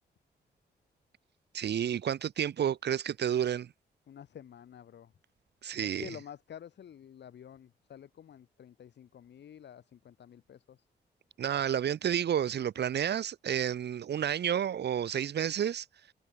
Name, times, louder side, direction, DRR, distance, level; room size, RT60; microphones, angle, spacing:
voice 1, 1.5-3.7 5.6-6.1 11.4-15.8, right 9 dB, 70° right, 1.2 m, -30 dB
voice 2, 4.1-5.1 5.8-10.8, left 9 dB, 75° left, 2.8 m, -50 dB
cardioid pair, 80°, 18 cm